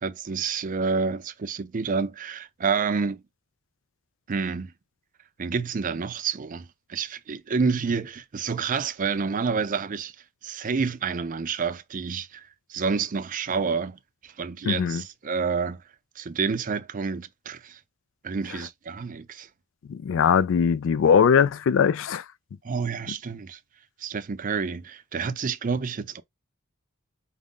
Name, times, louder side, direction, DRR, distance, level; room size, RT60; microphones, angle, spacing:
voice 1, 0.0-3.2 4.3-4.7 5.4-10.1 10.4-15.8 16.2-17.8 18.2-19.5 22.6-23.6 24.0-26.2, right 5 dB, 40° right, 0.5 m, -29 dB
voice 2, 14.7-15.0 19.9-22.2, left 7 dB, 65° left, 0.3 m, -21 dB
5.1 x 2.1 x 3.7 m
head